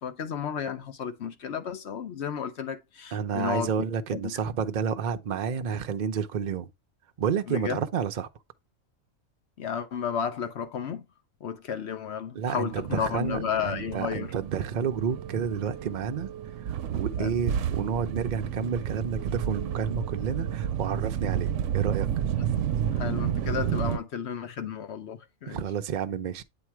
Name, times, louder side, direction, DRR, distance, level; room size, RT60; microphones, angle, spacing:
voice 1, 0.0-3.9 4.1-4.3 7.5-7.8 9.6-11.0 11.4-14.3 17.2-17.3 22.4-22.5 22.9-25.6, left 7 dB, 60° left, 0.9 m, -33 dB
voice 2, 3.1-6.7 7.2-8.3 12.3-16.3 16.6-22.1 25.5-26.4, right 7 dB, 55° right, 0.5 m, -30 dB
sound 1, 12.7-24.0, right 9 dB, 70° right, 0.9 m, -31 dB
8.6 x 2.9 x 4.5 m
omnidirectional pair, 1.4 m